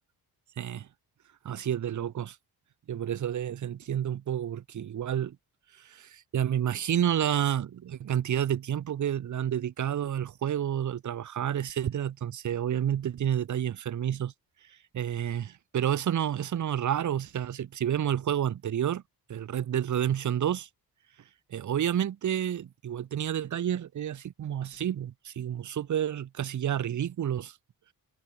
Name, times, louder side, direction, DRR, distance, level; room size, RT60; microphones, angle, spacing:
voice 1, 0.6-0.9 1.4-2.4 2.9-5.4 5.8-14.3 14.9-19.0 19.3-20.7 21.5-27.6, right 10 dB, 50° right, 1.0 m, -30 dB
wide cardioid pair, 145°, 39 cm